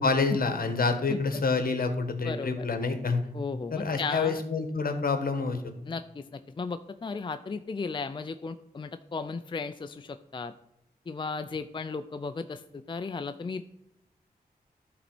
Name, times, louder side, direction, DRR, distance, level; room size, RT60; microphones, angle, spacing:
voice 1, 0.0-3.3 3.7-5.7, left 4 dB, 65° left, 8 dB, 1.3 m, -27 dB
voice 2, 1.1-1.4 2.2-2.7 3.3-4.4 5.9-10.5 11.1-13.6, left 4 dB, 30° left, 10 dB, 0.4 m, -35 dB
11.5 x 4.1 x 6.0 m, 0.81 s
cardioid pair, 60°, 16 cm